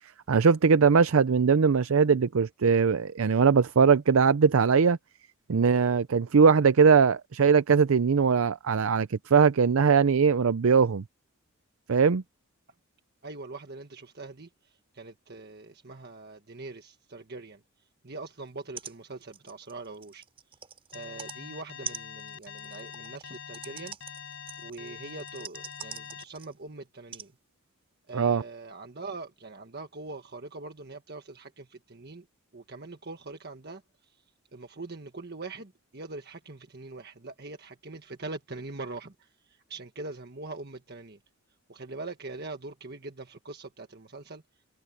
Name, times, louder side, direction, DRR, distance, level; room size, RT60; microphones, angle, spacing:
voice 1, 0.3-5.0 5.5-11.0 11.9-12.2 28.1-28.4, right 5 dB, 75° right, 0.5 m, -21 dB
voice 2, 13.2-20.2 20.9-24.0 24.6-27.3 28.1-32.3 32.5-34.2 34.5-41.2 41.7-44.4, right 3 dB, 50° right, 1.5 m, -42 dB
sound 1, 18.5-18.6 18.8-19.0 19.2-21.4 21.8-26.6 27.1-27.3 28.1-28.2, right 6 dB, 25° right, 5.1 m, -43 dB
Alarm, 20.9-26.2, left 8 dB, 65° left, 5.1 m, -44 dB
head